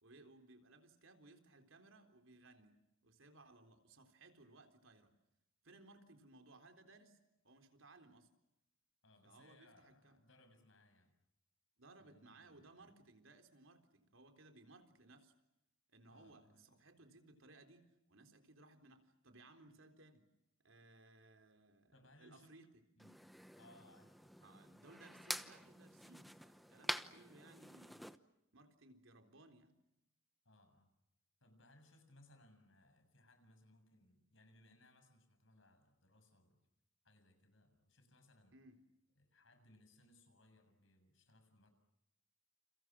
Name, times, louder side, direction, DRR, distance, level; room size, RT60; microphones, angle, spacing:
voice 1, 0.0-2.8 3.0-5.2 5.6-7.2 7.4-8.3 9.2-10.2 11.8-15.3 15.9-20.3 20.6-22.8 24.4-28.1 28.5-29.8 38.5-38.8, right 2 dB, 75° right, 5 dB, 3.8 m, -62 dB
voice 2, 9.0-11.1 12.0-12.9 16.1-16.7 21.9-22.6 23.0-23.2 23.5-24.5 30.5-30.9 31.4-36.6 37.0-38.6 39.2-41.7, left 1 dB, 70° left, 7 dB, 7.1 m, -67 dB
sound 1, 23.0-28.2, equal, ahead, 0.9 m, -47 dB
30.0 x 29.0 x 6.2 m, 0.85 s
head